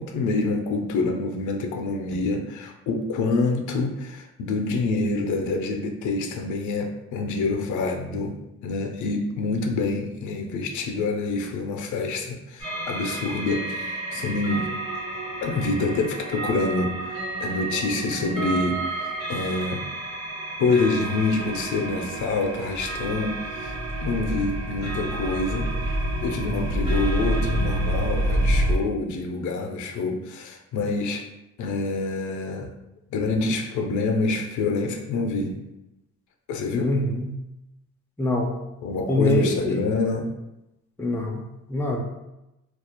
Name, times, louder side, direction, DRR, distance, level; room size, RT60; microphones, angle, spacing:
voice 1, 0.0-14.8 15.4-19.9 20.6-23.8 24.0-25.8 26.2-31.3 31.6-32.7 33.1-35.6 36.5-37.0 38.8-40.3, left 3 dB, 75° left, 4 dB, 0.5 m, -27 dB
sound 1, 12.6-28.8, right 1 dB, 90° right, 1.3 m, -29 dB
voice 2, 36.8-37.3 38.2-38.6 39.1-39.8 41.0-41.4 41.7-42.0, left 1 dB, 10° left, 1 dB, 0.3 m, -23 dB
2.3 x 2.0 x 2.9 m, 0.93 s
cardioid pair, 90°, 30 cm